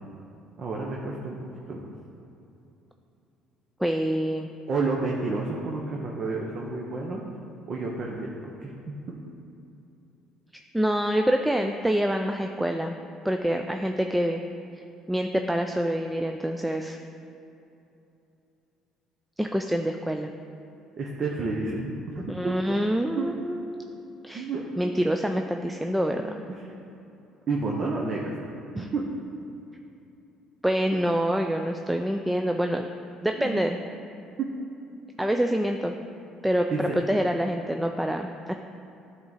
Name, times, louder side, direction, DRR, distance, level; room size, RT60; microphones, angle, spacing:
voice 1, 0.6-1.4 1.7-1.9 4.7-7.2 7.7-9.2 21.0-22.8 23.2-23.3 24.3-24.9 26.5-26.7 27.5-28.3 28.7-29.0 33.4-33.6 36.7-37.0, right 3 dB, 45° right, -2 dB, 0.8 m, -30 dB
voice 2, 3.8-4.5 10.5-13.0 13.2-14.4 15.1-17.0 19.4-20.3 22.3-23.9 24.2-24.5 24.8-26.2 28.8-28.9 30.6-32.9 33.2-33.8 35.2-36.0 36.4-38.5, equal, 5° right, 4 dB, 0.3 m, -26 dB
10.0 x 3.6 x 4.1 m, 2.8 s
supercardioid pair, 80°, 0 cm